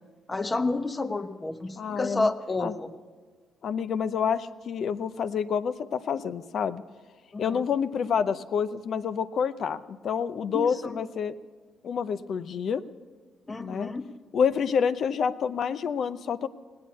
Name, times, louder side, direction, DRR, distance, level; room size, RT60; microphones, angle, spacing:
voice 1, 0.3-2.9 7.3-7.6 10.5-11.0 13.5-14.1, left 3 dB, 20° left, 9 dB, 0.9 m, -30 dB
voice 2, 1.8-2.3 2.6-2.7 3.6-6.8 7.4-11.4 11.8-12.8 13.6-13.9 14.3-16.5, left 7 dB, 60° left, 14 dB, 0.6 m, -28 dB
18.5 x 8.7 x 8.3 m, 1.4 s
cardioid pair, 90°, 0 cm